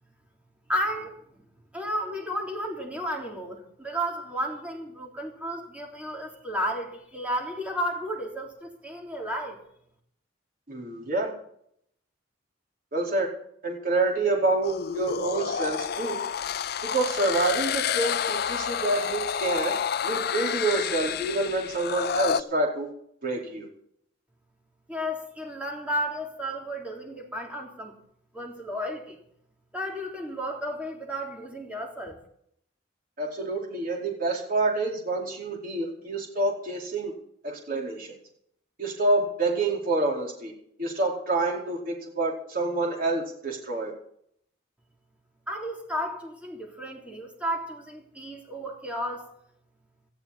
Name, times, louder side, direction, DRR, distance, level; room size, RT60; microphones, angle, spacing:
voice 1, 0.7-1.2 1.7-9.6 24.9-27.9 28.3-29.2 29.7-32.2 45.5-49.3, equal, 5° right, 0 dB, 3.6 m, -33 dB
voice 2, 10.7-11.3 12.9-13.3 13.6-16.2 16.8-19.7 20.0-22.9 23.2-23.7 33.2-37.1 37.4-38.1 38.8-40.5 40.8-43.9, right 2 dB, 50° right, -1 dB, 4.6 m, -27 dB
sound 1, 14.6-22.4, left 7 dB, 55° left, 0.5 m, -29 dB
18.5 x 13.5 x 4.3 m, 0.69 s
head